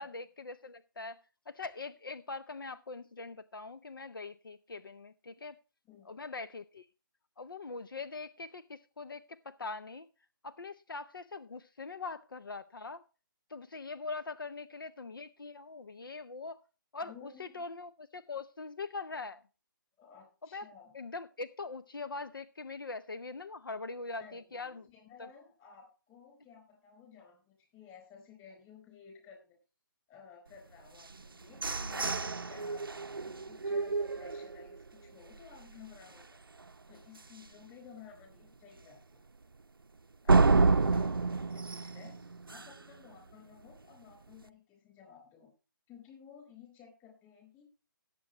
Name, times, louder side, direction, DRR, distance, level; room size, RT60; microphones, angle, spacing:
voice 1, 0.0-5.6 6.0-6.9 7.4-10.1 10.4-13.0 13.5-16.6 16.9-19.4 20.5-20.7 20.9-24.9 25.2-25.3 31.8-32.1 40.9-41.1, left 3 dB, 75° left, 0.7 m, -42 dB
voice 2, 5.9-6.2 17.0-17.7 20.0-20.9 24.2-29.6 30.1-31.7 32.3-32.9 33.2-36.4 36.9-39.2 40.2-41.1 41.3-42.2 42.5-45.5 45.9-47.6, left 7 dB, 20° left, 4.4 m, -55 dB
sound 1, 31.0-34.9 35.3-35.4 35.8-36.2 36.6-36.7 37.2-37.3 40.3-42.9, right 3 dB, 90° right, 0.6 m, -29 dB
18.0 x 7.6 x 2.9 m
figure-of-eight pair, 145°, 11 cm